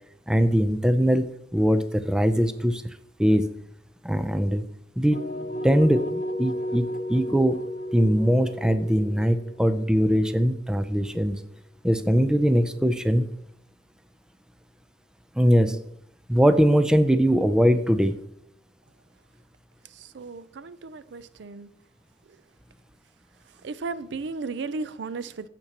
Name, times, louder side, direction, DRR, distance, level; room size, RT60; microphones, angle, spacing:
voice 1, 0.3-2.8 3.2-3.5 4.0-4.6 5.0-5.2 5.6-7.6 7.9-11.4 11.8-13.3 15.4-15.8 16.3-18.2, equal, 5° right, 10 dB, 0.4 m, -21 dB
sound 1, 5.1-11.0, equal, 40° left, 1.5 m, -33 dB
voice 2, 19.8-21.7 22.3-22.4 23.4-25.5, right 4 dB, 70° right, 15 dB, 0.4 m, -35 dB
15.5 x 6.0 x 2.9 m, 0.72 s
head